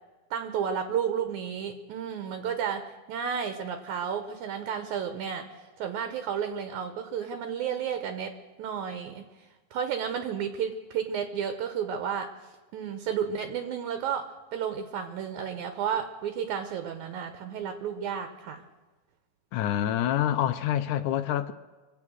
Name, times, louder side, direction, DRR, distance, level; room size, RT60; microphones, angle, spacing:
voice 1, 0.3-9.2 9.7-12.3 12.7-18.6, right 7 dB, 70° right, 2.3 m, -32 dB
voice 2, 19.5-21.5, left 11 dB, 75° left, 2.1 m, -26 dB
25.0 x 8.5 x 6.4 m
omnidirectional pair, 3.8 m